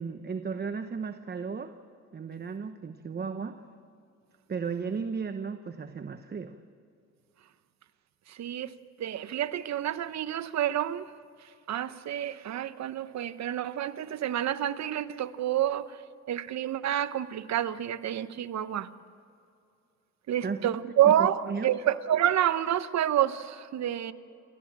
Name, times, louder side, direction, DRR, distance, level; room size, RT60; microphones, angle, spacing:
voice 1, 0.0-1.7 2.1-3.6 4.5-6.6 20.4-20.9 21.2-21.7, right 5 dB, 35° right, 1.0 m, -35 dB
voice 2, 8.3-11.1 11.4-16.0 16.3-18.9 20.3-24.1, right 11 dB, 65° right, 1.0 m, -28 dB
29.5 x 14.0 x 7.4 m
cardioid pair, 90°, 30 cm